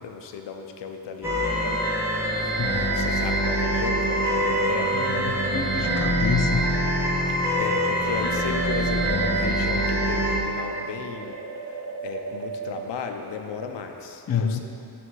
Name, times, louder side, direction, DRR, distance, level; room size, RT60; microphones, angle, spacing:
voice 1, 0.0-1.8 2.2-5.0 7.3-11.4 12.0-14.6, left 5 dB, 80° left, 5 dB, 0.7 m, -35 dB
sound 1, 1.2-10.4, equal, 5° right, 1.1 m, -24 dB
sound 2, 1.4-12.9, right 5 dB, 60° right, 0.7 m, -36 dB
voice 2, 4.9-6.7 14.3-14.6, left 6 dB, 40° left, 5 dB, 0.4 m, -28 dB
9.5 x 3.5 x 6.2 m, 2.8 s
wide cardioid pair, 150°, 42 cm